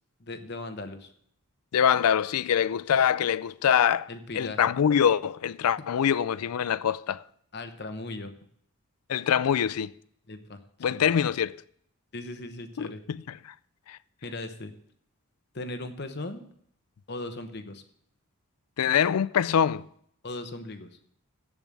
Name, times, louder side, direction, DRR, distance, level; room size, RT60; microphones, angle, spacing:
voice 1, 0.2-1.1 4.1-4.7 7.5-8.3 10.3-10.6 10.9-11.1 12.1-13.0 14.2-14.7 15.5-16.4 17.1-17.8 20.2-20.9, left 2 dB, 50° left, 1.0 m, -38 dB
voice 2, 1.7-4.1 4.3-7.2 9.1-9.9 10.8-11.6 12.8-13.2 13.9-14.0 18.8-19.8, left 8 dB, 85° left, 0.4 m, -24 dB
8.1 x 7.1 x 8.3 m
head